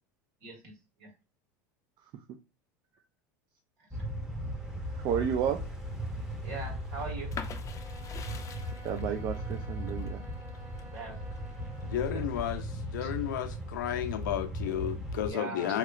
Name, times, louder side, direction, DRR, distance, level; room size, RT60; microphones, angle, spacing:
voice 1, 0.4-0.7 1.0-1.1 6.4-7.3 10.9-11.2 12.0-12.4 13.0-13.1 15.3-15.7, right 3 dB, 70° right, 1.7 m, -41 dB
voice 2, 2.0-2.4 4.9-5.7 8.8-10.2, right 8 dB, 50° right, 0.4 m, -32 dB
sound 1, 3.9-15.3, equal, 5° right, 0.8 m, -37 dB
sound 2, 7.3-12.9 13.4-14.2, left 6 dB, 30° left, 0.5 m, -46 dB
Bowed string instrument, 7.5-12.4, right 1 dB, 25° right, 1.4 m, -52 dB
voice 3, 11.8-15.8, left 10 dB, 85° left, 0.6 m, -33 dB
3.0 x 2.9 x 2.4 m
hypercardioid pair, 100°, 10 cm